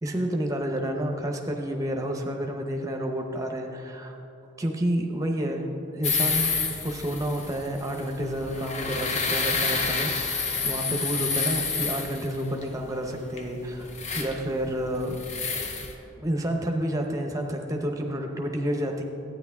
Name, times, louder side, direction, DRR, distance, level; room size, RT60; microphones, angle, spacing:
voice 1, 0.0-4.2 4.6-5.7 5.9-6.5 6.8-15.2 16.2-19.0, right 1 dB, 15° right, 2 dB, 0.8 m, -30 dB
sound 1, 6.0-15.9, left 4 dB, 35° left, 0.7 m, -29 dB
12.5 x 9.3 x 3.5 m, 2.9 s
head